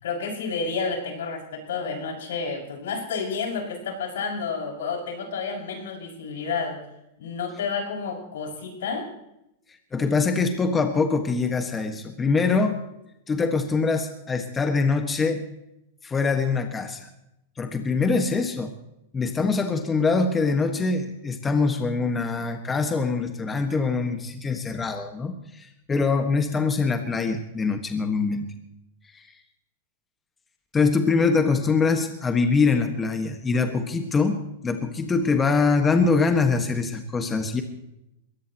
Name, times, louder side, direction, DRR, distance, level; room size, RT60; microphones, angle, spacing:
voice 1, 0.0-6.8 7.2-9.1, left 5 dB, 85° left, 0 dB, 6.2 m, -30 dB
voice 2, 9.9-12.8 13.3-15.4 16.0-17.1 17.6-18.7 19.1-28.5 29.1-29.2 30.7-34.4 34.6-37.6, left 4 dB, 15° left, 6 dB, 1.5 m, -23 dB
21.5 x 18.0 x 3.0 m, 0.85 s
supercardioid pair, 145°, 0 cm